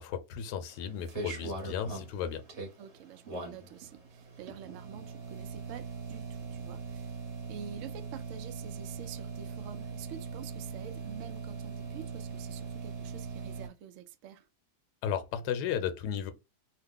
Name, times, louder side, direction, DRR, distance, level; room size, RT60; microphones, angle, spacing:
voice 1, 0.0-2.4 15.0-16.3, left 8 dB, 75° left, 1.1 m, -34 dB
sound 1, 0.7-13.7, right 4 dB, 45° right, 1.2 m, -41 dB
voice 2, 2.8-7.2 7.5-14.5, right 9 dB, 75° right, 0.7 m, -47 dB
2.9 x 2.1 x 3.6 m
omnidirectional pair, 1.8 m